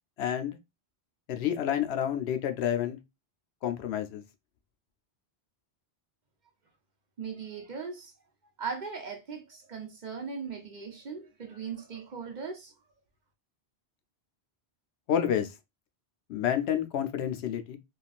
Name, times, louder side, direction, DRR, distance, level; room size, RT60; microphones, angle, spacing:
voice 1, 0.2-0.6 1.3-3.0 3.6-4.2 15.1-15.5 16.3-17.8, left 9 dB, 80° left, 0.8 m, -29 dB
voice 2, 7.2-8.1 8.6-12.7, right 5 dB, 50° right, 0.7 m, -39 dB
3.6 x 2.4 x 2.3 m
omnidirectional pair, 1.1 m